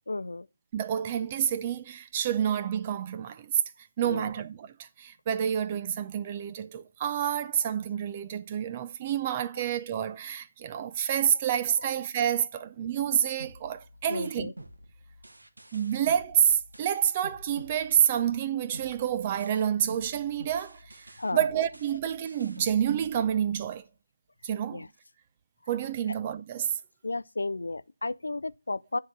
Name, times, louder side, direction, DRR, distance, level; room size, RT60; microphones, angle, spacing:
voice 1, 0.1-0.5 4.0-4.3 14.1-14.5 21.2-21.4 24.7-24.9 27.0-29.0, left 2 dB, 65° left, 0.4 m, -33 dB
voice 2, 0.7-3.5 4.0-14.5 15.7-21.0 21.3-23.8 24.4-24.9 25.7-26.7, right 9 dB, 20° right, 0.5 m, -28 dB
sound 1, 13.4-18.4 18.7-23.8, right 1 dB, 70° right, 1.4 m, -49 dB
9.4 x 3.8 x 5.9 m
figure-of-eight pair, 160°, 0 cm